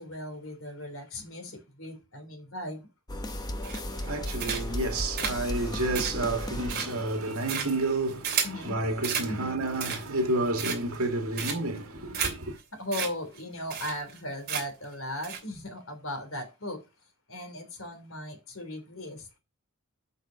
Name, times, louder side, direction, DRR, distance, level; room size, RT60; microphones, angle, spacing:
voice 1, 0.0-2.9 8.4-8.9 9.3-9.5 12.7-16.8 17.3-19.4, left 1 dB, 65° left, 3.3 m, -37 dB
sound 1, 3.1-8.1, left 1 dB, 20° left, 0.9 m, -35 dB
sound 2, 3.6-4.0 4.4-4.8 5.2-8.6 9.0-9.3 9.7-10.2 10.6-11.0 11.4-11.8 12.1-12.3 12.6-12.7 12.9-13.1 13.4-13.5 13.7-14.2 14.5-14.8 15.2-15.4, right 7 dB, 45° right, 3.0 m, -32 dB
voice 2, 3.6-12.6, right 2 dB, 85° right, 2.3 m, -30 dB
8.4 x 6.3 x 5.7 m
head